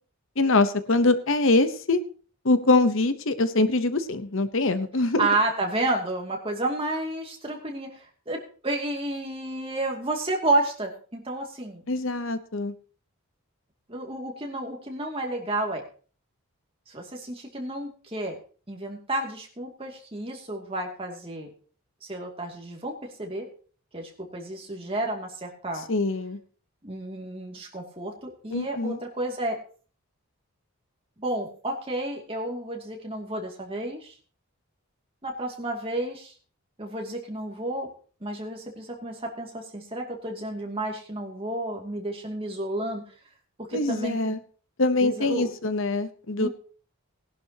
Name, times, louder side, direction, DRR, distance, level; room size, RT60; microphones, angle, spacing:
voice 1, 0.4-2.0 2.4-5.3 11.9-12.7 25.9-26.4 28.5-29.0 43.7-44.4 44.8-46.5, left 2 dB, 60° left, 11 dB, 0.9 m, -23 dB
voice 2, 5.2-11.8 13.9-15.8 16.9-18.4 18.7-21.5 22.0-23.5 23.9-25.8 26.8-29.6 31.2-34.1 35.2-36.3 36.8-37.9 38.2-43.0 43.6-44.4 45.0-45.5 46.4-46.5, right 2 dB, 25° right, 1 dB, 2.5 m, -31 dB
19.0 x 11.5 x 2.9 m, 0.41 s
head